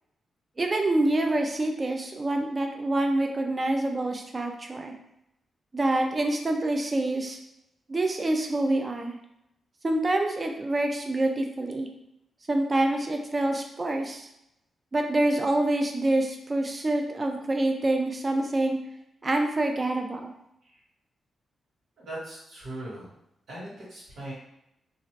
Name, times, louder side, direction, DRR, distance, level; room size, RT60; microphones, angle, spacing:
voice 1, 0.6-4.9 5.7-7.4 7.9-9.2 9.8-11.9 12.5-14.3 14.9-18.8 19.2-20.3, right 2 dB, 25° right, 3 dB, 0.3 m, -26 dB
voice 2, 22.0-23.1 23.5-24.3, right 1 dB, 75° right, -8 dB, 1.5 m, -39 dB
2.6 x 2.4 x 3.1 m, 0.82 s
wide cardioid pair, 175°, 0 cm